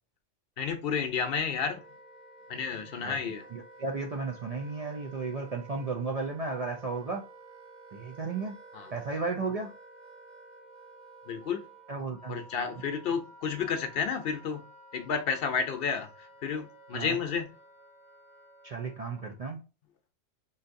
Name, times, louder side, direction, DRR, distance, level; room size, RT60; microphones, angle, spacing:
voice 1, 0.6-1.8 2.5-3.4 8.7-8.9 11.3-11.6 12.3-14.6 14.9-17.5, left 6 dB, 60° left, 0.8 m, -31 dB
Wind instrument woodwind instrument, 0.6-19.4, right 2 dB, 40° right, 1.0 m, -53 dB
voice 2, 3.0-7.3 7.9-8.6 8.9-9.7 11.9-12.4 16.9-17.2 18.6-19.6, right 4 dB, 60° right, 0.4 m, -34 dB
3.8 x 2.7 x 2.5 m
omnidirectional pair, 1.2 m